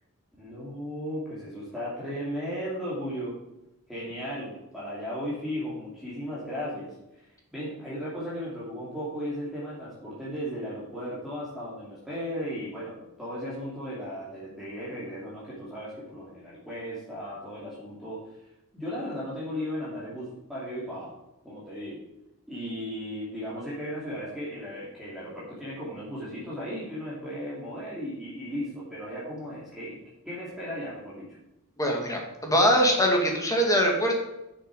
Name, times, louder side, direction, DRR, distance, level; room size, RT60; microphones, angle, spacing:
voice 1, 0.4-3.3 3.9-7.3 7.5-18.3 18.7-21.1 21.4-22.0 22.5-30.0 30.2-31.3, equal, ahead, -9 dB, 2.7 m, -36 dB
voice 2, 31.8-34.2, equal, 15° left, 1 dB, 1.9 m, -23 dB
11.0 x 6.9 x 4.8 m, 0.92 s
head